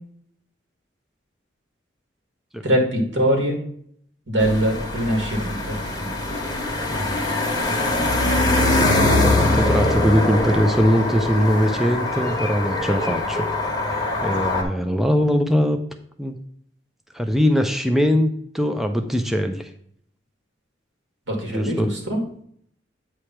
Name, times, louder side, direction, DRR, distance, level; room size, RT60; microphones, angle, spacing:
voice 1, 2.6-3.6 4.3-5.7 21.3-22.2, equal, 80° right, 1 dB, 2.2 m, -22 dB
sound 1, 4.4-14.6, left 2 dB, 20° left, 1.3 m, -22 dB
voice 2, 6.9-7.3 8.8-13.5 14.2-15.8 16.2-16.4 17.1-18.3 18.5-19.7 21.5-21.9, equal, ahead, 5 dB, 0.5 m, -21 dB
8.7 x 3.3 x 5.8 m, 0.65 s
head